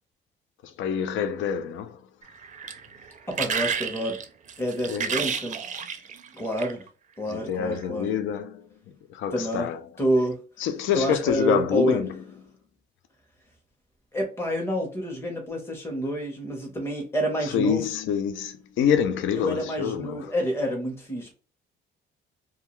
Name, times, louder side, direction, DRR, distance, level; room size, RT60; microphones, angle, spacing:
voice 1, 0.6-2.1 4.9-5.2 7.3-8.7 9.1-9.9 10.6-12.2 17.4-20.3, left 8 dB, 75° left, 0.4 m, -27 dB
sound 1, 2.2-6.9 7.6-7.8, right 6 dB, 40° right, 0.4 m, -31 dB
voice 2, 3.3-4.2 4.6-5.6 6.3-6.9 7.2-8.1 9.3-9.7 10.0-10.4 10.9-12.0 14.1-17.8 19.4-21.3, equal, 10° left, 0.7 m, -28 dB
2.3 x 2.2 x 2.9 m
cardioid pair, 90°, 20 cm